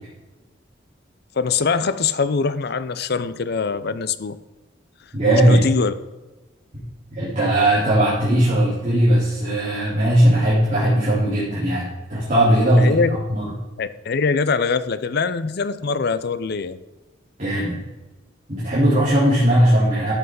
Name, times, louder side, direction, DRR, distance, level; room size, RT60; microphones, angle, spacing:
voice 1, 1.4-4.4 5.5-5.9 12.8-13.2 13.8-16.8, left 5 dB, 60° left, 14 dB, 0.6 m, -23 dB
voice 2, 5.1-5.6 7.1-13.0 13.3-13.5 17.4-17.8 18.5-20.1, right 1 dB, 40° right, -11 dB, 3.6 m, -18 dB
12.5 x 8.2 x 3.9 m, 1.1 s
head